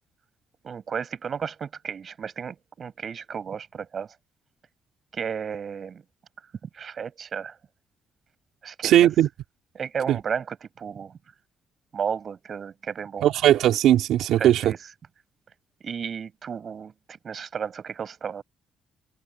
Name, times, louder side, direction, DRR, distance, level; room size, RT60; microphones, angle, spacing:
voice 1, 0.6-4.1 5.1-6.0 6.6-7.6 8.6-9.1 9.7-11.2 11.9-13.3 14.4-14.8 15.8-18.4, right 7 dB, 50° right, 7.7 m, -33 dB
voice 2, 8.8-9.3 10.1-10.2 13.2-14.7, right 12 dB, 80° right, 4.0 m, -18 dB
cardioid pair, 90°, 0 cm